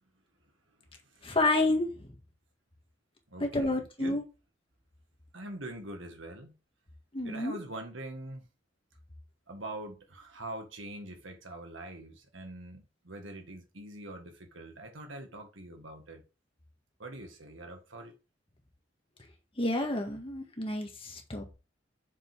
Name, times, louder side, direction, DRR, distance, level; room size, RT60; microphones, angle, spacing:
voice 1, 1.2-2.1 3.4-4.2 7.1-7.6 19.6-21.5, left 2 dB, 30° left, 1.8 m, -29 dB
voice 2, 3.3-4.2 5.3-6.5 7.2-8.5 9.5-16.2 17.0-18.1, right 1 dB, 80° right, 1.7 m, -44 dB
6.9 x 5.2 x 3.6 m
head